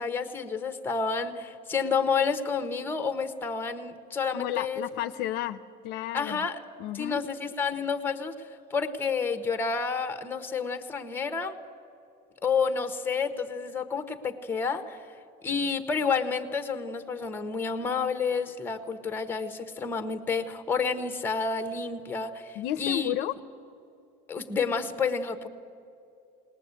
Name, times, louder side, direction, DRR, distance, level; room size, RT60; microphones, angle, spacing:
voice 1, 0.0-4.8 6.1-6.6 6.9-11.5 12.4-15.0 15.4-23.1 24.3-25.5, left 5 dB, 10° left, 8 dB, 1.0 m, -30 dB
voice 2, 4.3-6.5 6.8-7.2 22.6-23.3, left 12 dB, 60° left, 12 dB, 0.7 m, -32 dB
20.5 x 19.5 x 8.2 m, 2.6 s
cardioid pair, 160°, 19 cm